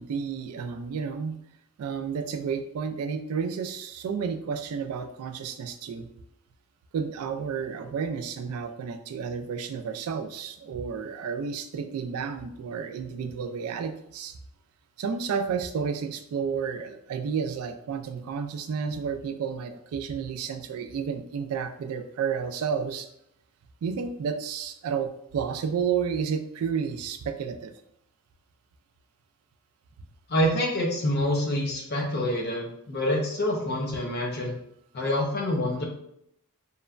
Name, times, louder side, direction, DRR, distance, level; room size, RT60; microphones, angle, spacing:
voice 1, 0.0-1.4 1.8-6.1 6.9-14.4 15.0-23.1 23.8-27.7, right 6 dB, 85° right, 7 dB, 0.3 m, -31 dB
voice 2, 30.3-34.6 34.9-35.8, left 1 dB, 50° left, 0 dB, 0.6 m, -26 dB
2.9 x 2.1 x 2.4 m, 0.74 s
head